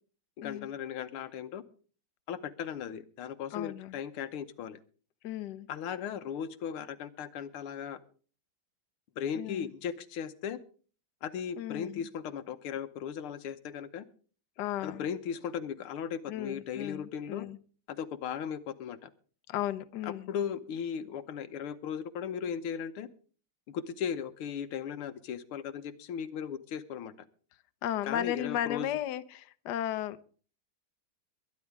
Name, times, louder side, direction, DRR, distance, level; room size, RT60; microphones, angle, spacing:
voice 1, 0.4-1.6 2.3-4.8 5.7-8.0 9.2-10.6 11.2-14.1 14.8-17.5 18.0-19.1 20.0-23.1 23.7-27.1 28.1-28.9, left 8 dB, 90° left, 10 dB, 1.9 m, -37 dB
voice 2, 3.5-4.0 5.2-5.7 9.3-9.7 11.6-12.0 14.6-15.0 16.3-17.6 19.5-20.3 27.8-30.2, left 12 dB, 60° left, 11 dB, 1.2 m, -35 dB
22.5 x 10.0 x 3.5 m, 0.41 s
omnidirectional pair, 2.3 m